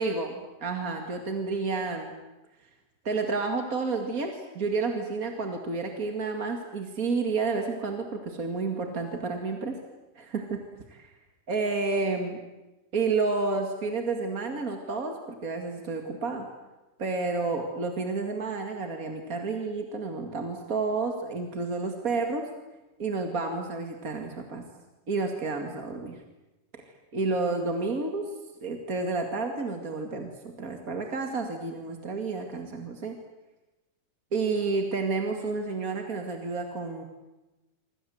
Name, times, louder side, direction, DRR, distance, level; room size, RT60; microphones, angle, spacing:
voice 1, 0.0-2.1 3.0-9.8 10.2-10.6 10.9-11.1 11.5-12.4 12.9-15.2 15.4-16.5 17.0-22.4 23.0-24.6 25.1-26.2 27.1-28.3 28.6-30.3 30.6-33.2 34.3-37.0, right 3 dB, 30° right, 4 dB, 1.7 m, -30 dB
27.0 x 25.5 x 7.9 m, 1.1 s
omnidirectional pair, 4.6 m